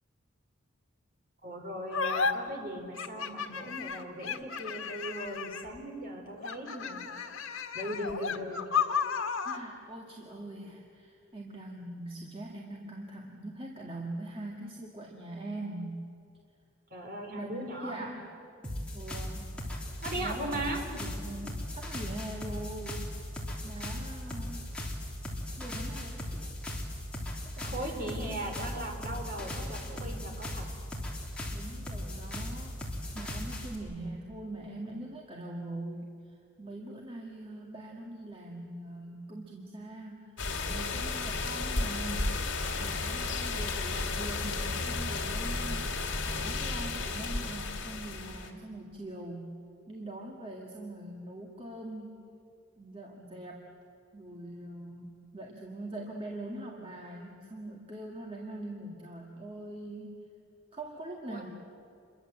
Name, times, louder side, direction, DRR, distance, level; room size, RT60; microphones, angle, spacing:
voice 1, 1.4-7.0 7.7-8.6 16.9-18.1 20.0-20.8 27.6-30.7 61.3-61.4, right 1 dB, 45° right, 2 dB, 4.1 m, -38 dB
sound 1, 1.9-2.3 3.0-5.8 6.4-9.6, left 6 dB, 85° left, 1.6 m, -33 dB
voice 2, 9.4-16.0 17.3-18.2 18.9-19.9 20.1-23.1 23.6-24.7 25.6-26.6 27.4-28.2 31.5-42.5 42.8-49.5 49.9-52.3 52.8-53.6 54.1-60.2 60.7-61.5, right 1 dB, 25° right, -1 dB, 2.0 m, -42 dB
sound 2, 18.6-33.7, left 1 dB, 5° left, 3.4 m, -38 dB
sound 3, 40.4-48.5, left 3 dB, 55° left, 2.7 m, -33 dB
28.0 x 22.5 x 7.8 m, 2.6 s
head